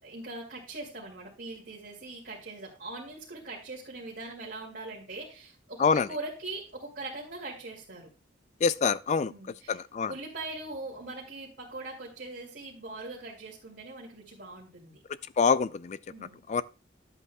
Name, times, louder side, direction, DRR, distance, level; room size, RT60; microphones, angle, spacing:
voice 1, 0.0-8.1 9.3-15.0 16.1-16.4, right 2 dB, 55° right, 2.2 m, -41 dB
voice 2, 8.6-9.3 9.7-10.1 15.4-16.0 16.5-16.6, left 5 dB, 35° left, 0.3 m, -25 dB
11.0 x 8.1 x 2.2 m
head